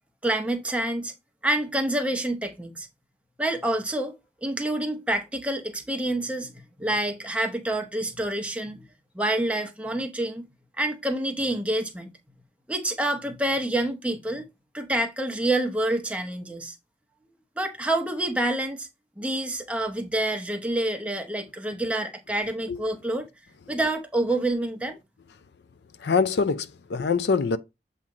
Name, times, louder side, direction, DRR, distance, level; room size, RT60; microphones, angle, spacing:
voice 1, 0.2-1.1 1.4-2.9 3.4-6.5 6.8-8.8 9.1-10.5 10.8-12.1 12.7-14.4 14.7-16.7 17.6-18.9 19.2-23.3 23.7-25.0, right 1 dB, 5° right, 0.7 m, -27 dB
voice 2, 26.0-27.6, left 5 dB, 70° left, 0.4 m, -24 dB
7.3 x 2.8 x 4.8 m
head